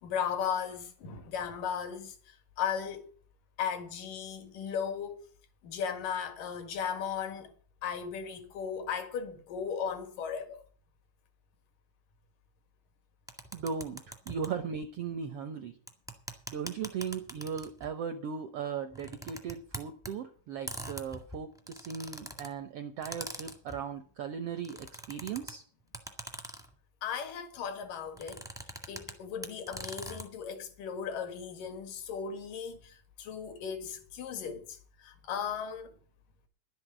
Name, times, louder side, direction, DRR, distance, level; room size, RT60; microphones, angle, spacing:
voice 1, 0.0-3.1 3.6-5.3 5.6-7.5 7.8-10.6 27.0-28.4 28.9-35.9, left 7 dB, 80° left, 3.4 m, -36 dB
sound 1, 13.3-14.5 15.9-17.9 18.9-20.1 20.7-22.5 23.0-23.8 24.6-25.5 25.9-26.7 28.1-29.1 29.4-30.2, equal, 5° right, 0.5 m, -42 dB
voice 2, 13.5-15.7 16.5-25.6, right 6 dB, 75° right, 1.3 m, -37 dB
11.5 x 7.9 x 7.9 m
omnidirectional pair, 3.8 m